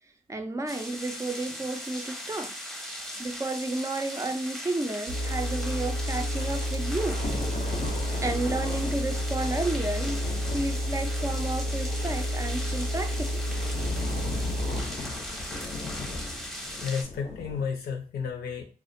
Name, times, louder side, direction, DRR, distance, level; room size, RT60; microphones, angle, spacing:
voice 1, 0.3-2.5 3.2-7.2 8.2-10.3 10.5-13.4, right 2 dB, 20° right, 6 dB, 0.3 m, -32 dB
sound 1, 0.7-17.0, equal, ahead, 0.7 m, -39 dB
sound 2, 5.1-14.8, equal, 70° right, 0.6 m, -30 dB
Thunder / Rain, 6.3-17.6, left 3 dB, 40° left, 0.5 m, -39 dB
voice 2, 16.8-18.6, left 6 dB, 85° left, 2 dB, 0.6 m, -32 dB
2.4 x 2.1 x 2.5 m, 0.38 s
cardioid pair, 65°, 16 cm